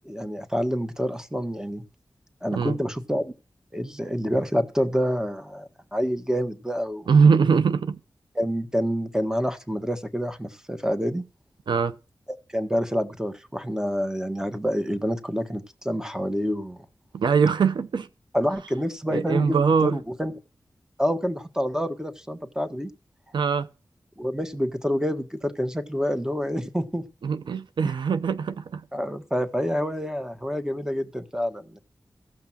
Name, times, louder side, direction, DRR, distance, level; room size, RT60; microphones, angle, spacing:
voice 1, 0.0-1.8 2.4-3.3 3.7-7.1 8.3-11.2 12.5-16.8 18.3-20.3 21.0-22.9 24.2-27.0 28.9-31.8, equal, 10° right, 1.6 m, -27 dB
voice 2, 7.1-8.0 11.7-12.0 17.1-18.1 19.1-20.0 23.3-23.7 27.2-28.8, right 5 dB, 85° right, 0.6 m, -21 dB
15.5 x 5.9 x 6.0 m
cardioid pair, 50°, 8 cm